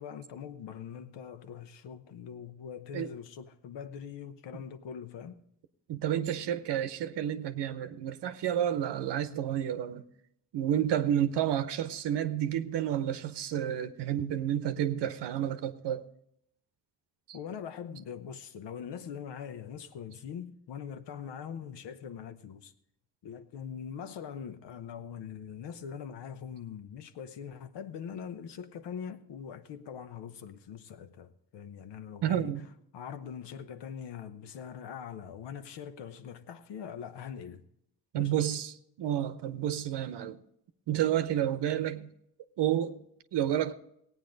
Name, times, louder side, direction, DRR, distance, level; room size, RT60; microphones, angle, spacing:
voice 1, 0.0-5.4 17.3-22.7 23.2-32.5 32.9-37.6 38.1-38.4, left 7 dB, 85° left, 0.9 m, -42 dB
voice 2, 5.9-10.0 10.5-16.0 17.3-17.4 32.2-32.7 38.1-40.4 40.9-42.1 42.6-43.0 43.3-43.7, right 10 dB, 80° right, 0.8 m, -30 dB
17.0 x 9.2 x 3.9 m
cardioid pair, 110°, 41 cm